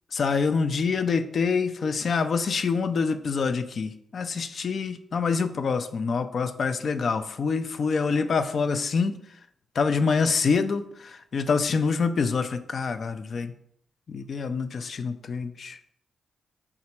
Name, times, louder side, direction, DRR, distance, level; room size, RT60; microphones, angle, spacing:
voice 1, 0.1-9.1 9.8-13.5 14.1-15.8, left 5 dB, 60° left, 10 dB, 0.3 m, -26 dB
3.5 x 2.8 x 4.4 m, 0.71 s
hypercardioid pair, 40°, 0 cm